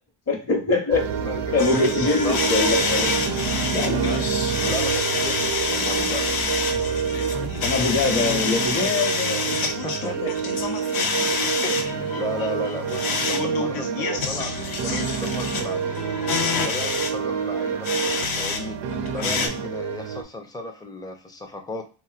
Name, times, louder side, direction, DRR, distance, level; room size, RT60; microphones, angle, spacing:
voice 1, 0.3-1.3 1.5-4.1 7.6-9.6 10.2-10.3 11.2-11.5, left 3 dB, 30° left, 3 dB, 1.0 m, -24 dB
sound 1, 0.9-20.2, right 7 dB, 65° right, 0.6 m, -27 dB
voice 2, 1.2-1.8 2.2-2.4 4.2-6.4 8.7-9.1 9.6-10.2 11.6-16.0 16.6-17.9 18.3-18.8 19.1-21.8, left 2 dB, 10° left, 3 dB, 0.5 m, -35 dB
sound 2, 1.6-18.6 18.9-19.5, left 5 dB, 50° left, 0.7 m, -28 dB
2.9 x 2.7 x 2.4 m, 0.36 s
cardioid pair, 85°, 47 cm